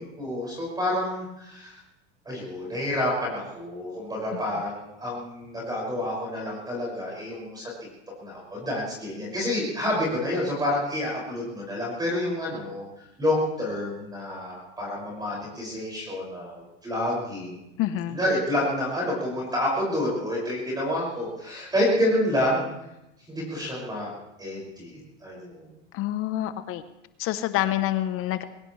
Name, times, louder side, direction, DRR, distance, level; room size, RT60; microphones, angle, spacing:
voice 1, 0.0-1.8 2.3-7.7 8.2-12.9 13.2-17.6 18.1-22.6 23.3-24.1 24.4-25.7, left 1 dB, 10° right, -3 dB, 6.0 m, -28 dB
voice 2, 17.8-18.2 25.9-26.8 27.2-28.4, left 13 dB, 35° left, 12 dB, 0.9 m, -27 dB
22.5 x 17.0 x 3.2 m, 0.89 s
supercardioid pair, 135°, 36 cm